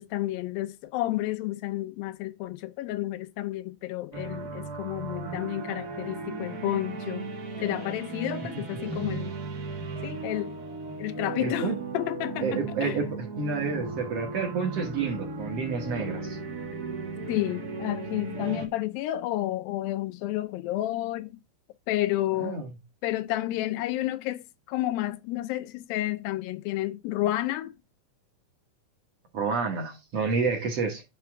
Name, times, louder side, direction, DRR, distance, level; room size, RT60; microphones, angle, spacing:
voice 1, 0.0-7.2 7.6-9.3 10.0-10.6 11.0-13.0 17.3-21.4 21.9-22.6 23.0-27.7, left 15 dB, 85° left, 2.4 m, -31 dB
sound 1, 4.1-18.7, right 3 dB, 70° right, 0.9 m, -36 dB
voice 2, 11.3-11.8 12.4-16.4 22.4-22.7 29.3-31.0, right 4 dB, 55° right, 1.9 m, -30 dB
9.6 x 3.4 x 4.9 m
omnidirectional pair, 4.1 m